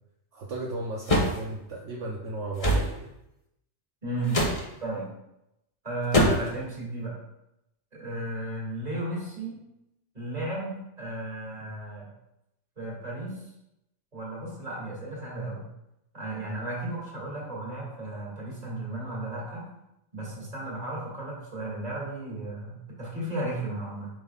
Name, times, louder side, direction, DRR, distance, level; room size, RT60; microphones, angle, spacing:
voice 1, 0.3-3.1, right 2 dB, 70° right, -2 dB, 1.1 m, -35 dB
sound 1, 1.1-1.4 2.6-2.9 4.3-4.6 6.1-6.6, equal, 30° left, 0.9 m, -22 dB
voice 2, 4.0-4.4 4.8-5.1 5.8-7.1 7.9-9.6 10.1-12.1 12.8-13.4 14.1-15.7 16.1-19.7 20.1-24.1, right 2 dB, 35° right, -5 dB, 2.2 m, -34 dB
7.8 x 5.4 x 2.4 m, 0.86 s
omnidirectional pair, 1.3 m